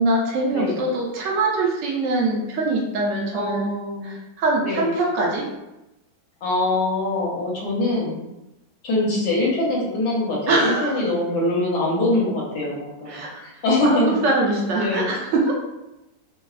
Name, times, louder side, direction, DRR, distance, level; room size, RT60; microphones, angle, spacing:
voice 1, 0.0-3.6 4.0-5.5 10.5-11.0 13.1-15.5, right 2 dB, 85° right, -2 dB, 0.6 m, -23 dB
voice 2, 3.3-4.1 4.6-4.9 6.4-8.2 8.8-14.2 14.7-15.0, left 2 dB, 75° left, -4 dB, 1.3 m, -23 dB
3.1 x 2.0 x 2.3 m, 0.96 s
omnidirectional pair, 1.9 m